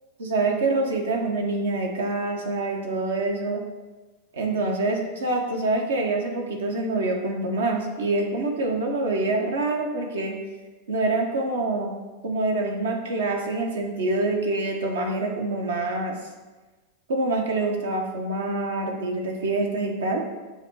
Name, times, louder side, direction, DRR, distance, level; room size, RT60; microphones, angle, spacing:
voice 1, 0.2-3.6 4.3-10.4 10.9-11.9 12.2-16.1 17.1-20.2, right 2 dB, 65° right, 1 dB, 1.1 m, -26 dB
7.0 x 3.0 x 5.4 m, 1.2 s
figure-of-eight pair, 90°, 0 cm